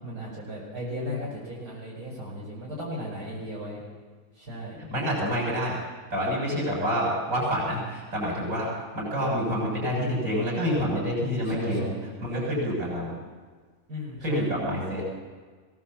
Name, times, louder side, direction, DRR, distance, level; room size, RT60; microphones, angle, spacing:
voice 1, 0.0-3.8 4.4-4.8 11.4-12.0 12.4-12.5 13.9-14.5, equal, 90° right, -5 dB, 6.2 m, -35 dB
voice 2, 4.9-5.8 6.1-8.7 8.9-11.9 12.2-13.2 14.2-15.0, equal, 65° right, -4 dB, 7.2 m, -27 dB
22.5 x 18.5 x 7.4 m, 1.5 s
omnidirectional pair, 1.5 m